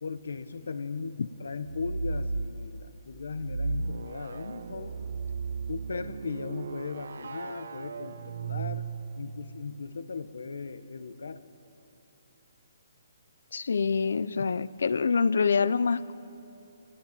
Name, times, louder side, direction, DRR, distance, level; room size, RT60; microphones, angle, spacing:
voice 1, 0.0-5.0 5.7-8.8 9.2-11.4, left 4 dB, 90° left, 12 dB, 1.6 m, -37 dB
sound 1, 1.6-2.5 3.4-9.4, right 4 dB, 60° right, 1.3 m, -35 dB
voice 2, 13.5-16.1, left 5 dB, 65° left, 18 dB, 0.7 m, -26 dB
29.0 x 18.0 x 9.2 m, 3.0 s
hypercardioid pair, 180°, 0 cm